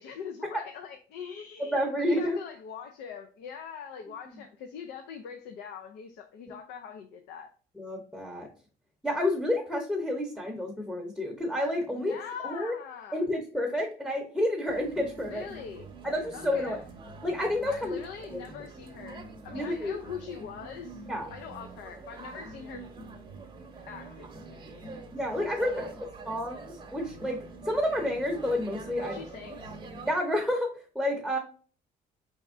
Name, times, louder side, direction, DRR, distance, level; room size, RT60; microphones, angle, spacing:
voice 1, 0.0-7.5 11.9-13.2 15.3-15.9 16.3-16.8 17.7-21.0 21.3-22.9 23.9-24.8 25.6-25.9 29.0-29.7 31.3-31.4, left 7 dB, 85° left, 0.5 m, -42 dB
voice 2, 1.6-2.4 7.8-8.5 9.0-12.2 12.4-12.7 13.1-15.5 16.0-16.8 17.2-17.9 18.3-18.4 19.5-20.0 21.1-21.3 25.1-25.9 26.2-27.4 27.6-29.2 30.0-31.4, left 1 dB, 5° left, 0.7 m, -29 dB
sound 1, 14.7-30.1, right 3 dB, 30° right, 0.8 m, -45 dB
4.2 x 3.5 x 2.4 m
cardioid pair, 110°, 17 cm